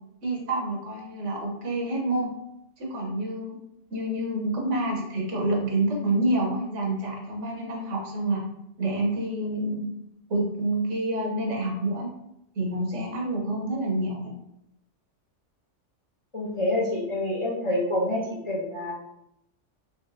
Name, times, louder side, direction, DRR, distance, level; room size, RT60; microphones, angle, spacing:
voice 1, 0.2-2.3 2.8-3.6 3.9-8.4 8.8-9.8 10.3-12.1 12.6-14.3, right 1 dB, 75° right, 0 dB, 1.3 m, -28 dB
voice 2, 16.3-18.9, left 1 dB, 30° left, -5 dB, 0.7 m, -27 dB
4.1 x 3.2 x 2.6 m, 0.79 s
omnidirectional pair, 1.3 m